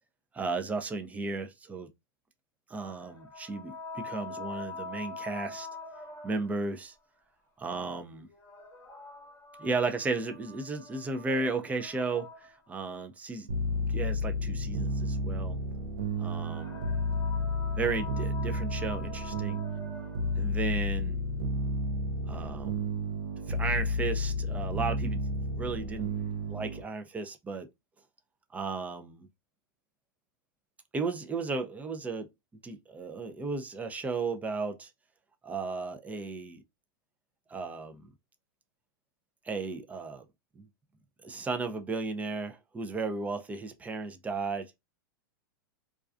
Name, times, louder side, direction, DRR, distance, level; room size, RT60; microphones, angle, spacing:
voice 1, 0.3-1.9 2.7-5.7 6.2-6.9 7.6-8.3 9.6-13.5 13.9-15.6 16.2-16.8 17.8-19.6 20.4-21.2 22.2-22.9 23.5-27.7 28.5-29.3 30.9-32.3 32.6-34.9 35.4-36.6 37.5-38.1 39.4-40.3 40.6-40.7 41.2-44.8, right 3 dB, 15° right, 0.4 m, -34 dB
sound 1, 2.8-6.8 8.3-12.8 16.0-20.4, left 3 dB, 15° left, 0.8 m, -45 dB
sound 2, 13.5-26.8, left 1 dB, 80° right, 0.5 m, -32 dB
2.3 x 2.2 x 2.4 m
hypercardioid pair, 115°, 12 cm